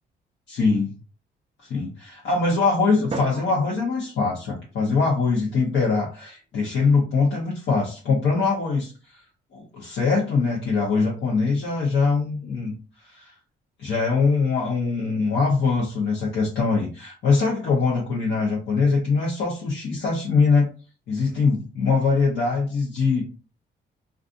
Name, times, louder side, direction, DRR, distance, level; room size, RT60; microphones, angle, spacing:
voice 1, 0.5-0.9 1.6-9.2 9.5-13.3 13.8-20.7 21.1-23.2, left 4 dB, 70° left, -3 dB, 0.8 m, -23 dB
Drum, 3.1-5.4, right 3 dB, 30° right, 0.4 m, -37 dB
2.5 x 2.4 x 2.4 m, 0.36 s
cardioid pair, 80°, 20 cm